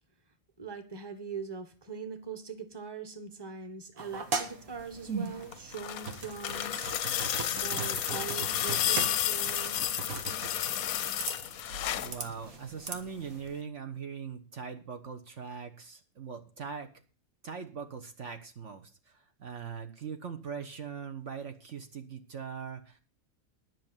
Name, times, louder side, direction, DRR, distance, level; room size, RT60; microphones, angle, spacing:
voice 1, 0.6-6.9 7.5-9.9, right 5 dB, 20° right, 9 dB, 1.3 m, -42 dB
sound 1, 4.0-13.4, right 4 dB, 85° right, 1.9 m, -39 dB
sound 2, 5.4-12.2 13.5-13.6, left 11 dB, 85° left, 1.2 m, -32 dB
voice 2, 11.9-16.9 17.4-23.0, right 6 dB, 60° right, 6 dB, 1.3 m, -41 dB
11.0 x 6.0 x 8.9 m, 0.38 s
omnidirectional pair, 1.5 m